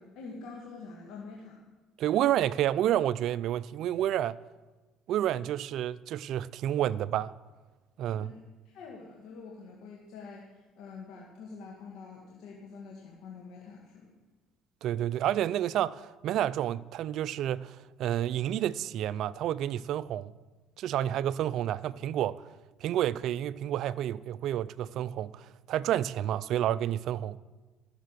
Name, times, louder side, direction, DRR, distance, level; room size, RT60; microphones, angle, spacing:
voice 1, 0.0-1.6 8.0-14.2, left 4 dB, 70° left, 1.7 m, -46 dB
voice 2, 2.0-4.4 5.1-7.3 8.0-8.3 14.8-20.3 20.8-22.4 22.8-27.4, right 11 dB, 65° right, 0.4 m, -30 dB
12.5 x 6.7 x 6.5 m
supercardioid pair, 85°, 0 cm